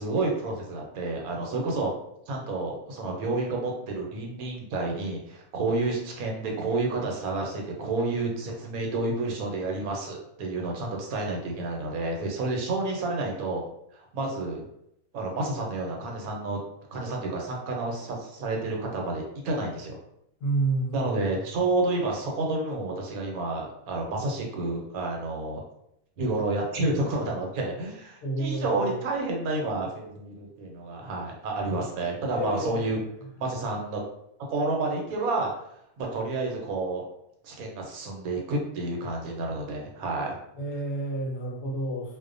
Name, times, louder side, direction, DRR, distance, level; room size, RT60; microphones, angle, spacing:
voice 1, 0.0-1.9 2.3-13.6 13.9-14.7 15.1-16.6 16.9-20.0 20.9-25.6 26.2-33.0 33.4-34.0 34.5-35.5 36.0-37.1 37.4-40.3, right 2 dB, 85° right, 0 dB, 1.1 m, -30 dB
voice 2, 20.4-21.2 28.2-28.8 32.3-32.9 40.5-42.2, right 2 dB, 70° left, -1 dB, 1.0 m, -29 dB
2.5 x 2.1 x 2.5 m, 0.77 s
omnidirectional pair, 1.5 m